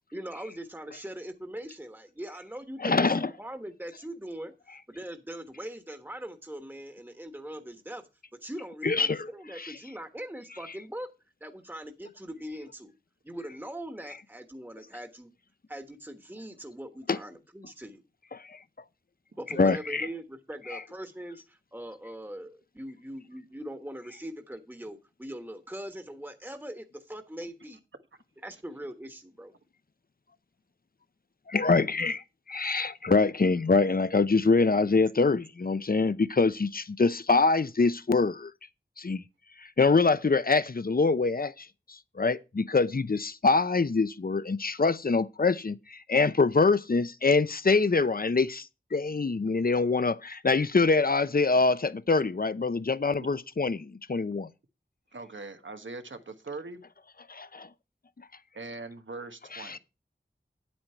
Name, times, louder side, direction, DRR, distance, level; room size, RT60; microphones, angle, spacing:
voice 1, 0.1-8.0 8.4-11.1 11.4-12.9 13.2-15.3 15.7-18.0 19.4-27.8 28.4-29.5, right 1 dB, 10° right, 1.3 m, -41 dB
voice 2, 2.8-3.3 8.8-9.3 9.6-9.7 17.1-17.2 18.3-18.6 19.6-20.1 20.7-20.8 31.5-32.2 32.5-38.5 39.0-39.2 39.8-54.5 57.3-57.7 59.5-59.8, left 4 dB, 50° left, 0.7 m, -25 dB
voice 3, 55.1-56.8 58.5-59.8, right 3 dB, 85° right, 1.3 m, -41 dB
9.4 x 8.6 x 4.4 m
wide cardioid pair, 55°, 19 cm